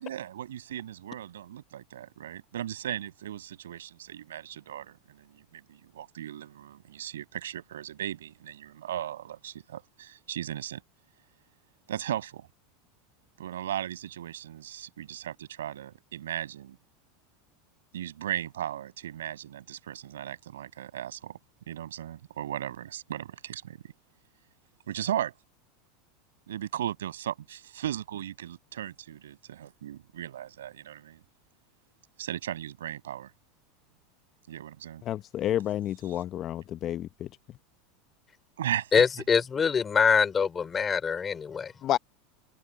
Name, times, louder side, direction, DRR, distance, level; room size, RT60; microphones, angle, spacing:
voice 1, 0.0-10.8 11.9-12.5 13.4-16.8 17.9-21.4 21.7-23.8 24.9-25.3 26.5-31.2 32.2-33.3 34.5-35.0 38.6-39.0, right 11 dB, 90° right, 6.8 m, -37 dB
voice 2, 35.1-37.3 41.8-42.0, left 12 dB, 40° left, 0.9 m, -30 dB
voice 3, 38.9-41.7, left 6 dB, 25° left, 3.3 m, -24 dB
hypercardioid pair, 105°, 0 cm